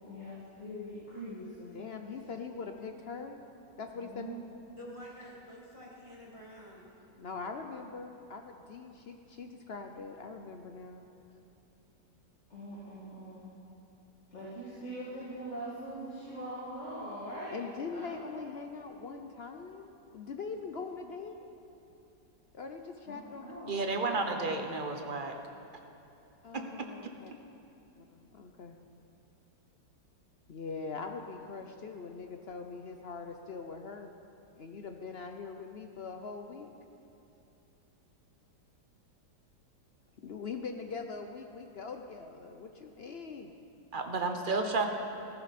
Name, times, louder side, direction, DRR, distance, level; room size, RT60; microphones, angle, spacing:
voice 1, 0.0-1.8 3.9-4.4 12.5-13.5 14.3-17.6 17.9-18.4 23.1-24.5, right 1 dB, 40° left, -9 dB, 2.6 m, -42 dB
voice 2, 1.7-3.5 3.8-4.2 7.2-11.0 17.5-21.5 22.5-23.5 26.4-27.3 28.0-28.8 30.5-34.1 34.6-36.7 40.2-43.5, left 4 dB, 65° left, 5 dB, 0.6 m, -42 dB
voice 3, 4.7-6.9, equal, 15° right, -5 dB, 2.7 m, -48 dB
voice 4, 23.7-25.3 26.5-26.9 43.9-44.9, right 3 dB, 40° right, 4 dB, 0.8 m, -32 dB
15.5 x 14.5 x 4.2 m, 3.0 s
omnidirectional pair, 1.9 m